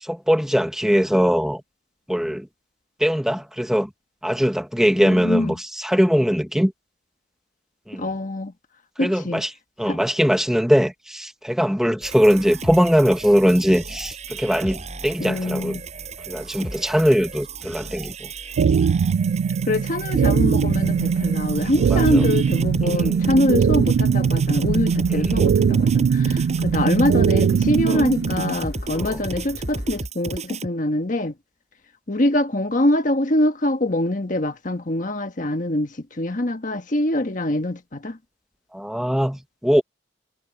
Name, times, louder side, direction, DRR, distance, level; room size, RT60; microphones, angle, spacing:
voice 1, 0.0-1.6 2.1-2.5 3.0-3.9 4.2-6.7 7.9-8.1 9.0-9.5 9.8-15.8 16.3-18.3 21.9-22.2 22.8-23.2 25.1-25.5 27.9-28.1 28.9-29.2 38.7-39.8, equal, 5° right, 1.3 m, -21 dB
voice 2, 5.0-5.5 8.0-8.5 9.0-9.4 9.9-10.0 15.2-15.8 19.6-31.3 32.1-38.2, left 1 dB, 45° left, 1.5 m, -24 dB
sound 1, 12.0-30.7, right 2 dB, 40° right, 6.3 m, -33 dB
sound 2, 18.6-28.5, right 6 dB, 75° right, 0.3 m, -20 dB
sound 3, 20.3-30.0, equal, 85° left, 5.0 m, -38 dB
head